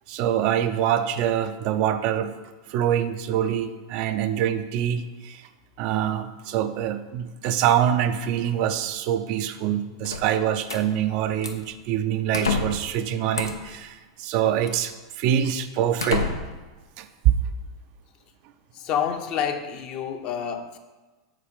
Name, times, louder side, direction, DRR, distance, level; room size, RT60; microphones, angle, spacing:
voice 1, 0.1-2.3 2.7-5.5 5.8-16.3 17.0-17.3, right 10 dB, 50° right, 9 dB, 0.5 m, -25 dB
sound 1, 10.0-10.8 11.4-11.7 12.3-12.9 13.3-13.8 14.7-14.8 15.4-15.5 16.0-16.7, left 4 dB, 90° left, 0.6 m, -29 dB
voice 2, 18.7-20.8, left 8 dB, 45° left, 5 dB, 0.8 m, -28 dB
7.4 x 4.2 x 5.1 m, 1.2 s
hypercardioid pair, 100°, 2 cm